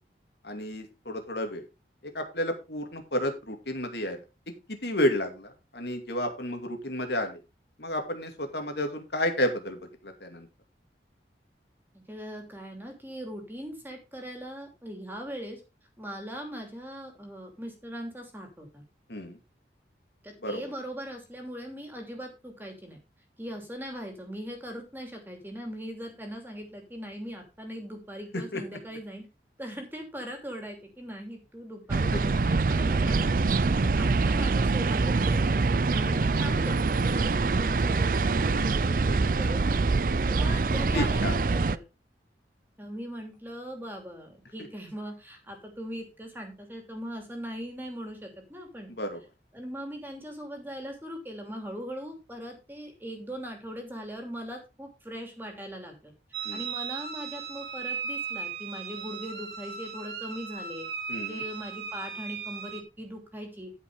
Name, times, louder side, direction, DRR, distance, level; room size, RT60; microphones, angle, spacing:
voice 1, 0.4-1.6 2.1-4.2 4.5-7.4 7.8-10.5 19.1-19.4 20.4-20.6 28.3-28.6 32.1-32.2 36.1-36.2 40.5-40.6 40.9-41.4 48.9-49.2 56.4-56.6 61.1-61.4, left 1 dB, 70° left, 5 dB, 2.4 m, -31 dB
voice 2, 11.9-15.6 16.0-18.8 20.2-23.0 23.4-29.3 29.6-33.4 33.8-35.4 35.9-41.8 42.8-48.9 49.5-56.1 56.5-60.9 61.2-63.7, equal, 10° right, 3 dB, 2.8 m, -40 dB
sound 1, 31.9-41.8, right 3 dB, 50° right, 0.5 m, -25 dB
sound 2, 56.3-62.8, right 6 dB, 65° right, 2.4 m, -37 dB
12.0 x 5.5 x 4.9 m, 0.28 s
head